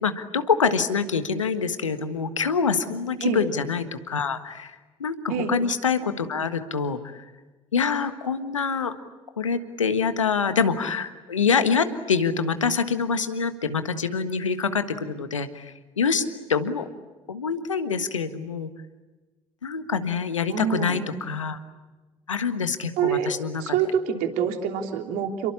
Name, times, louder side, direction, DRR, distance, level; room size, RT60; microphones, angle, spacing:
voice 1, 0.0-7.2 7.7-8.9 9.4-16.2 16.5-16.9 17.3-18.7 19.6-21.6 22.3-23.8, left 5 dB, 85° left, 10 dB, 1.5 m, -25 dB
voice 2, 20.5-21.2 23.0-23.3 23.6-25.5, right 8 dB, 60° right, 4 dB, 3.3 m, -26 dB
29.0 x 23.0 x 8.6 m, 1.2 s
figure-of-eight pair, 60°, 16 cm